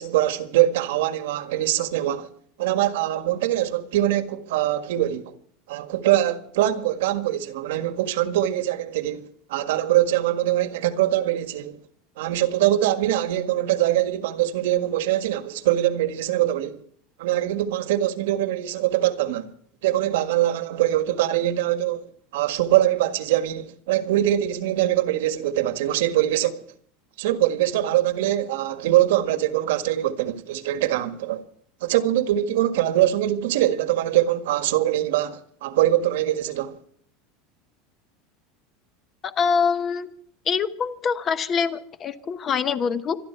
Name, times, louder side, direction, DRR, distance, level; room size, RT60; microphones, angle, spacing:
voice 1, 0.0-2.3 2.6-5.4 5.7-11.8 12.2-16.8 17.2-19.5 19.8-26.7 27.2-31.4 31.8-36.8, right 13 dB, 85° right, 1.7 m, -23 dB
voice 2, 39.2-40.1 40.5-43.2, left 6 dB, 25° left, 1.0 m, -24 dB
26.0 x 11.5 x 4.6 m
supercardioid pair, 170°, 0 cm